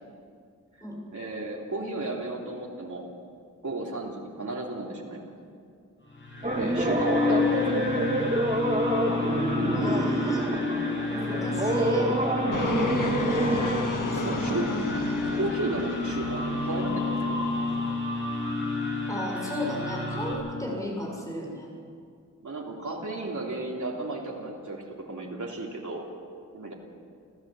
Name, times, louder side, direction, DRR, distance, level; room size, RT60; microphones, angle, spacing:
voice 1, 1.1-3.1 3.6-5.3 6.5-7.8 13.9-14.7 15.3-17.4 22.4-26.0 26.5-26.7, right 2 dB, 70° right, -2 dB, 3.3 m, -34 dB
sound 1, 6.1-20.3, left 3 dB, 40° left, 6.4 m, -30 dB
sound 2, 6.4-13.9, right 1 dB, 25° right, 2.8 m, -27 dB
voice 2, 6.5-7.0 9.6-10.5 11.1-12.1 14.1-15.5 19.1-21.7, left 1 dB, 10° left, -2 dB, 6.9 m, -34 dB
Fixed-wing aircraft airplane, 12.5-17.9, left 3 dB, 80° left, 1.7 m, -34 dB
28.0 x 15.0 x 7.8 m, 2.2 s
wide cardioid pair, 85°, 31 cm